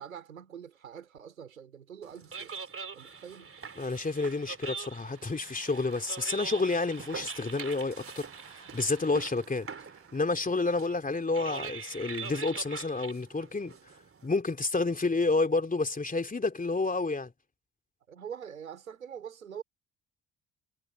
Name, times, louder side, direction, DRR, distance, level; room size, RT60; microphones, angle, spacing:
voice 1, 0.0-2.5 2.9-3.5 18.1-19.6, right 8 dB, 85° right, 4.6 m, -44 dB
sound 1, 2.0-14.3, right 5 dB, 30° right, 3.5 m, -43 dB
voice 2, 3.8-9.7 10.1-13.7 14.2-17.3, left 3 dB, 20° left, 3.2 m, -30 dB
Applause / Crowd, 4.7-10.9, right 17 dB, 65° right, 7.3 m, -56 dB
figure-of-eight pair, 45°, 40 cm